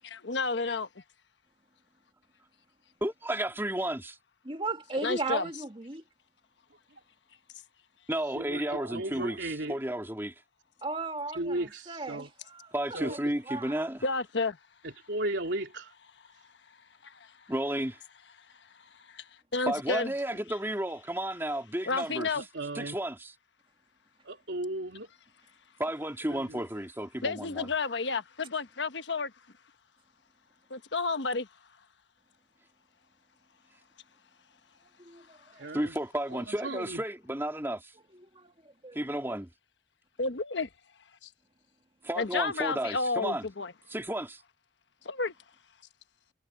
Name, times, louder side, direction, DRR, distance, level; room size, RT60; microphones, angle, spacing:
voice 1, 0.0-0.9 5.0-5.5 14.0-14.6 17.0-17.3 19.0-20.1 21.9-22.4 27.2-29.3 30.7-31.5 40.2-40.7 41.2-41.3 42.2-43.7 45.0-45.3, left 3 dB, 85° left, 1.2 m, -31 dB
voice 2, 3.0-4.2 8.1-10.3 12.7-14.0 17.5-18.0 19.7-22.3 22.7-23.3 25.8-27.7 35.7-37.9 38.9-39.5 42.0-43.4 43.9-44.4, right 1 dB, 15° right, 3.3 m, -32 dB
voice 3, 4.4-6.0 10.8-13.2 13.5-13.9 35.0-35.7 38.1-39.0, right 3 dB, 30° right, 2.5 m, -37 dB
voice 4, 8.3-9.8 11.4-12.3 12.9-13.2 14.8-15.9 22.3-23.0 24.2-25.1 26.3-26.6 35.6-35.9 36.3-37.0, right 1 dB, 90° right, 3.1 m, -35 dB
head